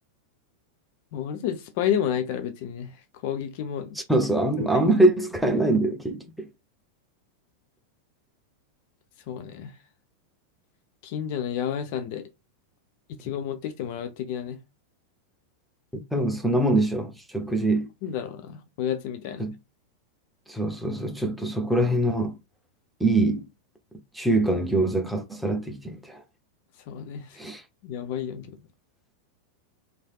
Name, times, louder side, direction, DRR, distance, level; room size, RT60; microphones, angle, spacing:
voice 1, 1.1-2.9 3.2-4.0 9.3-9.7 11.0-12.3 13.2-14.6 18.0-19.4 26.9-27.4 27.8-28.6, left 9 dB, 50° left, 0.4 m, -30 dB
voice 2, 3.9-6.5 16.1-17.9 19.4-19.5 20.5-22.4 23.0-23.5 24.1-26.2 27.4-27.6, right 2 dB, ahead, 0.6 m, -24 dB
3.2 x 2.6 x 2.3 m
figure-of-eight pair, 90°, 0 cm